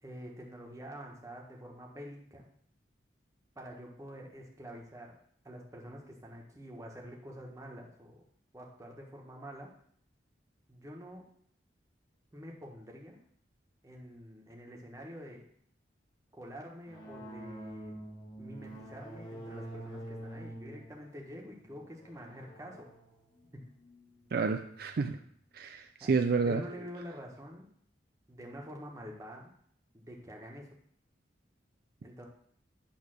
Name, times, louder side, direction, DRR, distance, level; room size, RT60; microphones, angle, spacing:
voice 1, 0.0-2.5 3.5-5.1 5.4-8.2 8.5-9.7 10.7-11.3 12.3-13.2 13.8-15.4 16.3-17.9 18.4-22.9 23.5-23.6 26.0-26.2 26.5-27.7 28.3-29.5 29.9-30.7 32.0-32.3, equal, 15° right, -1 dB, 1.2 m, -47 dB
sound 1, 16.9-25.0, right 1 dB, 25° left, 1.5 m, -47 dB
voice 2, 24.3-25.2 25.5-26.6, right 4 dB, 55° right, 6 dB, 0.4 m, -30 dB
8.6 x 3.4 x 6.4 m, 0.64 s
head